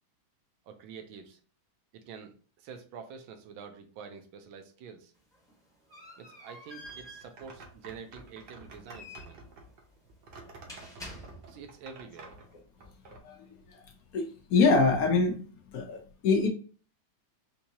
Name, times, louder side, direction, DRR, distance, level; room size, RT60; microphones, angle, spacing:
voice 1, 0.7-1.4 1.9-5.1 6.2-9.4 11.5-12.3, right 6 dB, 80° right, 6 dB, 1.5 m, -47 dB
sound 1, 5.1-11.8, equal, 5° left, 0.7 m, -49 dB
sound 2, 6.8-13.2, right 3 dB, 60° right, 1.3 m, -50 dB
voice 2, 14.1-15.4 15.7-16.5, left 4 dB, 80° left, 2 dB, 0.8 m, -24 dB
4.4 x 2.7 x 2.7 m, 0.40 s
omnidirectional pair, 2.3 m